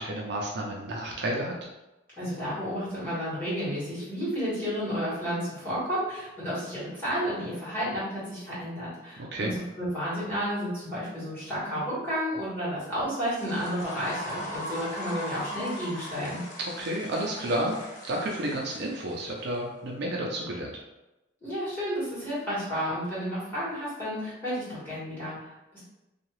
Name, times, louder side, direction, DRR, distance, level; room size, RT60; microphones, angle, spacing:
voice 1, 0.0-1.5 9.3-9.5 16.6-17.7 18.1-20.7, right 1 dB, 60° right, -1 dB, 0.5 m, -31 dB
voice 2, 2.2-16.4 21.4-25.8, equal, 10° left, -11 dB, 1.5 m, -32 dB
sound 1, 13.2-19.6, equal, 40° left, 0.5 m, -39 dB
2.7 x 2.3 x 3.0 m, 0.99 s
head